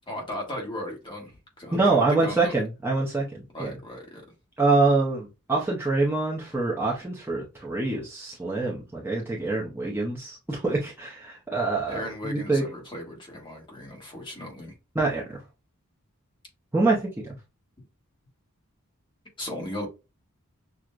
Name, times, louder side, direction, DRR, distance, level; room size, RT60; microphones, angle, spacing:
voice 1, 0.1-2.6 3.5-4.2 11.9-14.8 19.4-19.9, left 1 dB, 25° left, 1.3 m, -36 dB
voice 2, 1.7-3.7 4.6-12.6 14.9-15.2 16.7-17.4, right 3 dB, 10° right, 0.7 m, -25 dB
6.0 x 2.1 x 2.5 m
head